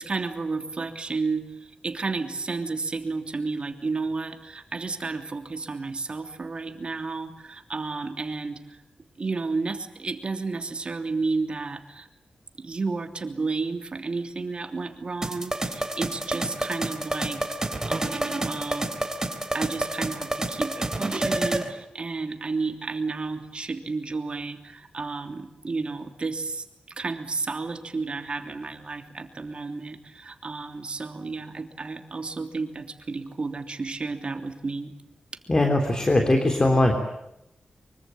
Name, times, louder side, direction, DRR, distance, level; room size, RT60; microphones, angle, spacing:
voice 1, 0.0-8.8 9.2-12.1 12.6-18.9 19.5-26.6 27.0-34.9, right 4 dB, 40° right, 6 dB, 3.2 m, -32 dB
sound 1, 15.2-21.7, right 2 dB, 20° right, 3.5 m, -29 dB
voice 2, 35.5-36.9, left 2 dB, 30° left, 4 dB, 3.4 m, -20 dB
25.0 x 24.0 x 9.1 m, 0.84 s
wide cardioid pair, 100°, 3 cm